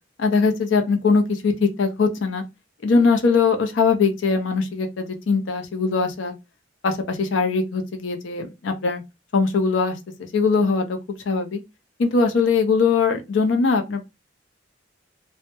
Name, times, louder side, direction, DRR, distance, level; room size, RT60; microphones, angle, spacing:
voice 1, 0.2-2.4 2.8-6.3 6.8-9.0 9.3-9.9 10.2-11.0 11.3-11.6 12.0-14.0, left 4 dB, 80° left, 5 dB, 0.5 m, -21 dB
2.2 x 2.0 x 2.8 m, 0.23 s
head